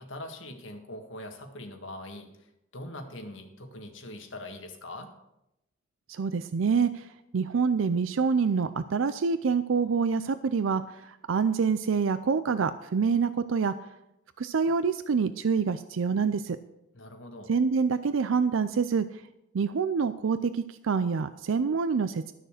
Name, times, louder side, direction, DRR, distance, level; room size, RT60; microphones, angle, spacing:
voice 1, 0.0-5.1 16.9-17.5, left 1 dB, 75° left, 4 dB, 1.8 m, -42 dB
voice 2, 6.1-7.1 7.3-13.7 14.4-16.6 17.5-19.2 19.5-22.3, right 5 dB, 85° right, 13 dB, 0.5 m, -26 dB
12.5 x 6.6 x 6.5 m, 0.86 s
head